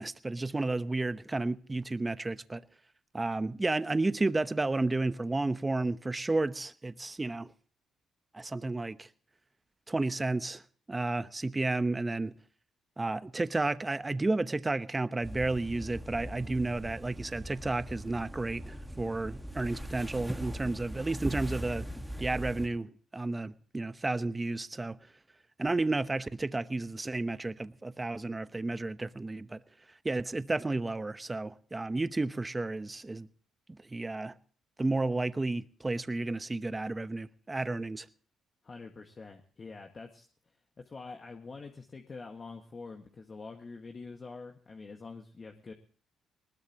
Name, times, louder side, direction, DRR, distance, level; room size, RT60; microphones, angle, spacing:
voice 1, 0.0-2.6 3.1-7.5 8.3-9.1 9.9-10.6 10.9-12.3 13.0-21.9 22.2-25.0 25.6-29.6 30.0-33.3 33.7-34.3 34.8-38.1, right 2 dB, 20° right, 0.9 m, -32 dB
sound 1, 15.2-22.7, equal, 5° right, 1.7 m, -40 dB
voice 2, 38.6-40.2 40.8-45.7, left 4 dB, 35° left, 1.7 m, -46 dB
20.0 x 19.5 x 2.9 m
cardioid pair, 90°, 0 cm